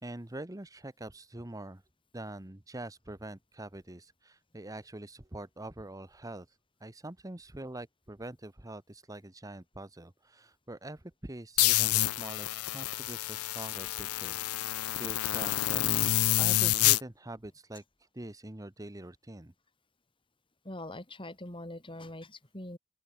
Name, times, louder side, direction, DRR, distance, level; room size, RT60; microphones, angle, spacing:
voice 1, 0.0-1.8 2.1-19.5, right 1 dB, 15° right, 1.1 m, -44 dB
sound 1, 11.6-17.0, left 16 dB, 90° left, 0.4 m, -28 dB
voice 2, 20.6-22.8, left 1 dB, 25° left, 5.9 m, -43 dB
open air
head